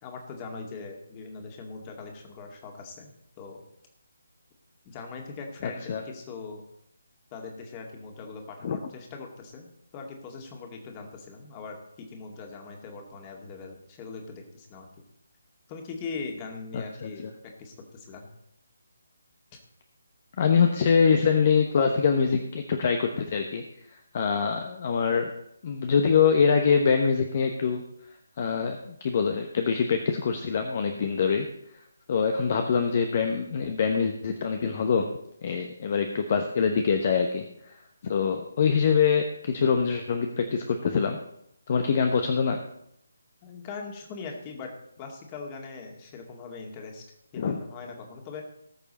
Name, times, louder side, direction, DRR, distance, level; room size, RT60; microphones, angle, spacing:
voice 1, 0.0-3.1 3.4-3.6 4.9-6.6 7.3-9.7 9.9-14.9 15.7-17.3 17.6-18.3 43.4-44.7 45.0-48.4, left 4 dB, 20° left, 2 dB, 2.1 m, -41 dB
voice 2, 5.6-6.0 8.6-8.8 16.7-17.3 20.4-23.6 24.1-25.3 25.6-27.8 28.4-31.5 32.1-35.1 35.4-37.7 38.0-41.2 41.7-42.6 47.4-47.6, left 6 dB, 35° left, 5 dB, 1.0 m, -24 dB
18.5 x 7.0 x 4.2 m, 0.75 s
figure-of-eight pair, 145°, 0 cm